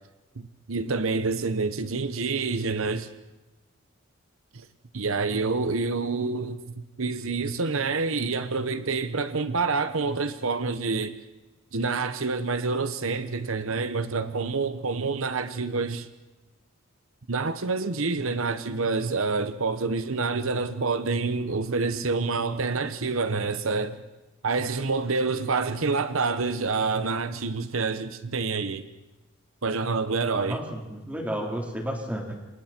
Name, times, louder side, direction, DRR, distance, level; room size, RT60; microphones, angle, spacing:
voice 1, 0.4-3.1 4.5-4.7 4.9-11.2 11.7-16.1 17.3-24.0 24.4-28.9 29.6-30.6, right 4 dB, 75° right, 1.0 m, -27 dB
voice 2, 30.5-32.3, equal, 5° right, 4.0 m, -32 dB
29.0 x 27.5 x 4.5 m
head